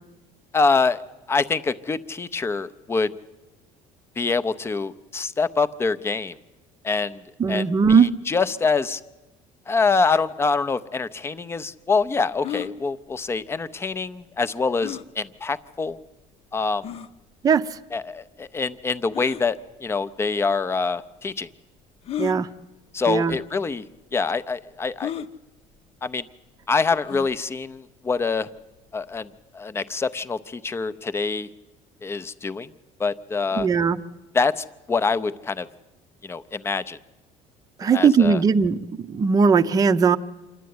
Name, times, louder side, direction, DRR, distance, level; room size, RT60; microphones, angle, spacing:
voice 1, 0.5-1.0 1.3-3.1 4.2-6.3 6.8-7.2 7.5-9.0 9.7-16.0 16.5-16.9 17.9-21.5 22.9-23.8 24.1-25.1 26.0-26.2 26.7-28.5 28.9-31.5 32.0-32.7 33.0-33.7 34.3-35.7 36.2-37.0 37.9-38.4, left 4 dB, 15° left, 13 dB, 0.6 m, -25 dB
voice 2, 7.4-8.1 17.4-17.6 22.2-22.5 23.1-23.4 33.6-34.0 37.8-38.8 39.1-40.2, right 6 dB, 25° right, 11 dB, 0.6 m, -18 dB
sound 1, 12.4-12.7 14.8-15.1 15.9-16.0 16.8-17.1 19.1-19.4 20.5-20.6 22.0-22.4 23.3-23.4 23.7-23.8 25.0-25.3 27.0-27.4, left 10 dB, 45° left, 0.8 m, -32 dB
26.5 x 11.5 x 9.5 m, 1.1 s
cardioid pair, 150°, 15 cm